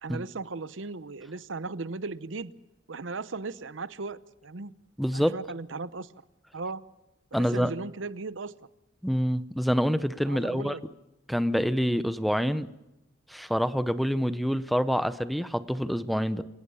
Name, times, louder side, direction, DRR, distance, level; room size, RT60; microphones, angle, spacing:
voice 1, 0.0-2.5 2.9-4.7 5.1-6.1 6.5-6.8 7.3-8.5 10.3-10.8, right 3 dB, 85° right, 16 dB, 0.8 m, -37 dB
voice 2, 5.0-5.4 7.3-7.7 9.0-10.8 11.3-12.7 13.3-16.4, equal, ahead, 13 dB, 0.8 m, -26 dB
28.0 x 16.5 x 7.0 m, 0.92 s
head